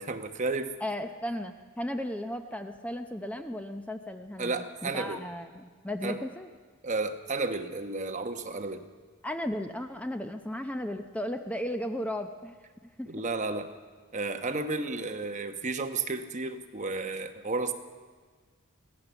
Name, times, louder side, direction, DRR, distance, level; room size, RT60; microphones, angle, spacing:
voice 1, 0.0-0.7 4.4-5.2 6.0-6.2 6.8-8.9 13.1-13.7 14.1-17.7, right 3 dB, 35° right, 7 dB, 1.0 m, -32 dB
voice 2, 0.8-6.5 9.2-12.6 13.0-13.1, left 1 dB, 5° left, 7 dB, 0.7 m, -35 dB
23.0 x 16.5 x 7.0 m, 1.5 s
head